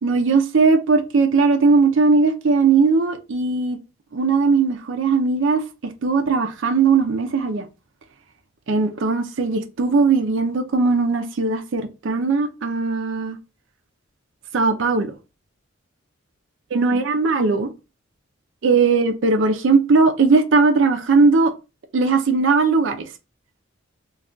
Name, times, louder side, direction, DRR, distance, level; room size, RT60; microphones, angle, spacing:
voice 1, 0.0-3.8 4.1-5.6 6.0-7.6 8.7-13.4 14.5-15.1 16.7-17.7 18.6-21.5 21.9-23.1, right 4 dB, 60° right, 0.4 m, -18 dB
2.3 x 2.2 x 3.6 m
head